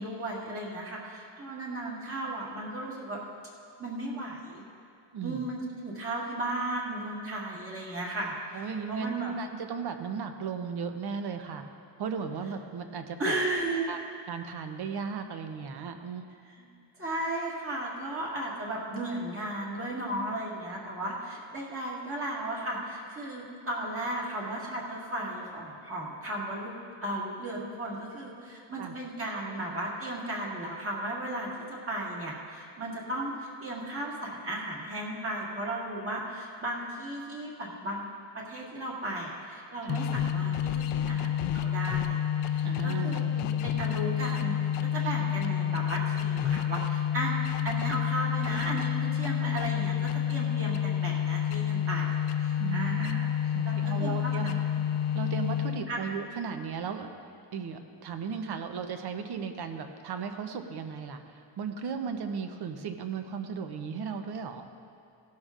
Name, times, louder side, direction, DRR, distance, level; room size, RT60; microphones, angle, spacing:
voice 1, 0.0-3.2 3.8-4.6 5.2-8.3 8.9-9.3 13.2-14.0 17.0-26.7 27.0-42.2 42.5-47.3 47.6-53.3 53.6-54.8 55.9-56.1, right 1 dB, 25° right, -4 dB, 1.9 m, -35 dB
voice 2, 5.1-5.5 8.5-11.7 12.0-13.3 13.9-14.0 14.3-16.3 28.8-28.9 39.8-40.0 42.6-43.6 52.6-53.2 53.5-54.5 55.1-57.1 57.5-64.6, right 6 dB, 55° right, 7 dB, 0.8 m, -36 dB
sound 1, 39.9-56.0, left 9 dB, 85° left, 0.6 m, -29 dB
17.5 x 12.0 x 2.5 m, 2.5 s
cardioid pair, 170°, 49 cm